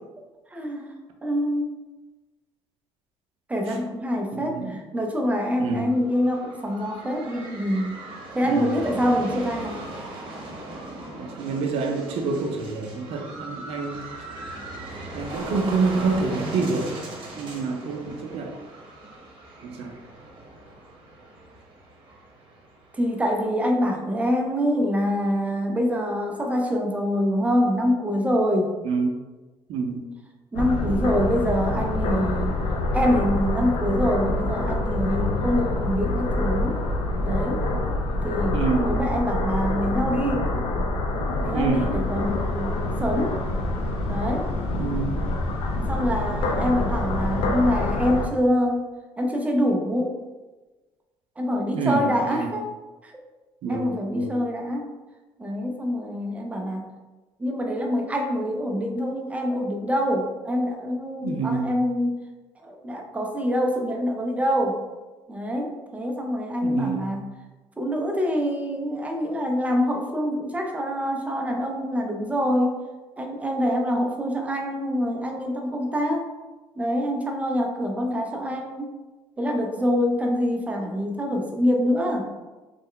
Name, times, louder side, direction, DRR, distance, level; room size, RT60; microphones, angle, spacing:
voice 1, 0.5-1.0 1.2-1.7 3.5-8.0 8.3-9.8 22.9-28.8 30.5-32.6 32.9-36.8 37.2-37.7 38.2-40.5 41.4-43.4 44.1-44.5 45.7-48.8 49.2-50.2 51.4-52.7 53.0-53.1 53.7-54.9 55.4-56.8 57.4-62.2 62.6-64.8 65.3-67.2 67.8-72.8 73.2-76.3 76.8-79.0 79.4-82.3, equal, 15° right, 2 dB, 0.5 m, -25 dB
voice 2, 4.3-4.8 5.6-5.9 8.4-8.8 11.2-14.0 15.1-16.9 17.4-18.5 19.6-19.9 28.8-29.2 29.7-30.0 38.5-38.9 41.5-41.9 44.8-45.2 51.7-52.5 53.6-54.3 61.2-61.8 66.6-67.1, right 4 dB, 70° right, 3 dB, 0.6 m, -27 dB
sound 1, 5.8-23.4, right 1 dB, 50° right, 0.9 m, -39 dB
sound 2, 30.6-48.3, left 2 dB, 65° left, 0.5 m, -26 dB
3.2 x 2.1 x 3.7 m, 1.2 s
cardioid pair, 110°, 10 cm